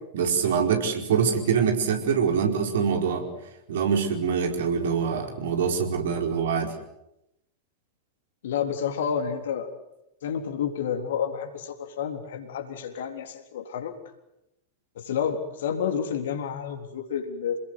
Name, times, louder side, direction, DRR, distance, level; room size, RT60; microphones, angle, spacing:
voice 1, 0.1-3.3 3.7-6.7, right 6 dB, 60° right, 4 dB, 4.7 m, -24 dB
voice 2, 8.4-9.7 10.2-14.0 15.0-17.6, left 7 dB, 60° left, 5 dB, 3.7 m, -30 dB
28.5 x 20.5 x 8.1 m, 0.86 s
figure-of-eight pair, 90°, 0 cm